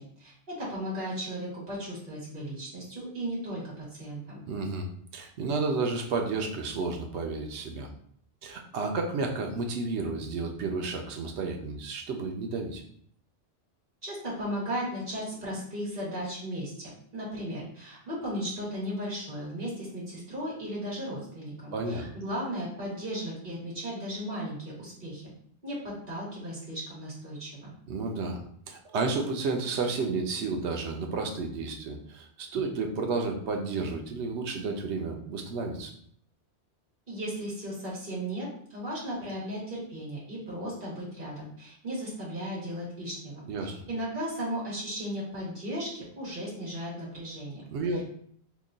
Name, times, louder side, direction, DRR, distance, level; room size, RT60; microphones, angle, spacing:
voice 1, 0.0-4.4 14.0-25.2 25.6-27.7 32.5-32.6 37.1-47.6 47.9-48.0, equal, 55° right, -6 dB, 1.5 m, -36 dB
voice 2, 4.5-7.9 8.4-12.8 21.7-22.1 27.9-35.9 43.5-43.7 47.7-48.0, right 3 dB, 90° right, 3 dB, 0.9 m, -31 dB
2.9 x 2.2 x 3.7 m, 0.64 s
omnidirectional pair, 1.1 m